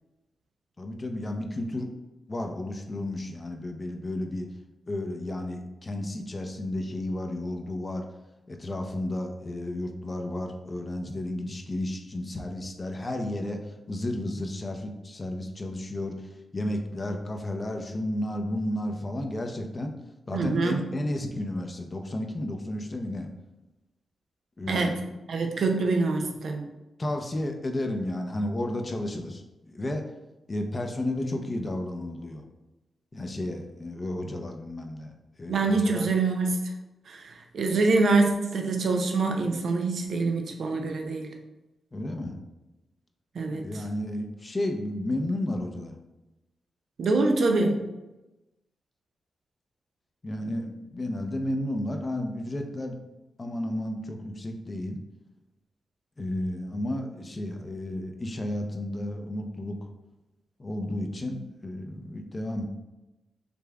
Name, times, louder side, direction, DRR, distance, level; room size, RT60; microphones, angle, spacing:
voice 1, 0.8-1.9 2.3-4.5 4.9-8.1 8.5-16.2 16.5-19.9 20.3-23.3 24.6-24.9 27.0-30.1 30.5-32.4 33.1-35.1 35.4-36.1 41.9-42.4 43.5-46.0 50.2-53.0 53.4-55.0 56.2-59.8 60.6-62.6, left 1 dB, 40° left, 4 dB, 0.7 m, -32 dB
voice 2, 20.3-20.9 24.7-25.0 25.3-26.7 35.5-36.7 37.1-41.3 43.3-43.8 47.0-47.8, right 3 dB, 70° right, 4 dB, 0.6 m, -25 dB
5.1 x 3.3 x 2.3 m, 1.0 s
supercardioid pair, 45°, 0 cm